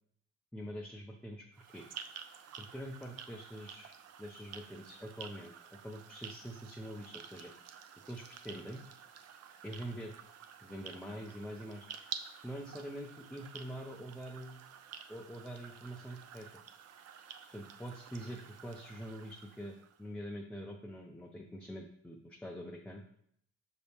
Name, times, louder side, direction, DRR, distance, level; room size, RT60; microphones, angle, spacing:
voice 1, 0.5-1.4 1.7-1.9 2.6-3.9 4.2-7.5 8.1-8.8 9.6-10.1 10.6-11.9 12.4-14.6 15.1-16.5 17.5-23.0, equal, 5° left, 0 dB, 0.4 m, -45 dB
sound 1, 1.5-20.0, right 7 dB, 55° right, 0.5 m, -50 dB
5.6 x 2.7 x 3.5 m, 0.68 s
cardioid pair, 90°, 30 cm